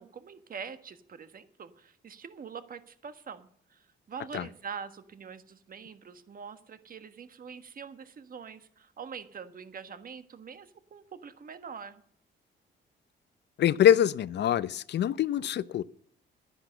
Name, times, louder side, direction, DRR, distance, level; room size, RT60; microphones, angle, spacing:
voice 1, 0.0-12.0, right 6 dB, 45° right, 1.4 m, -44 dB
voice 2, 13.6-15.8, left 10 dB, 60° left, 0.6 m, -24 dB
11.0 x 10.0 x 6.7 m
cardioid pair, 90°, 20 cm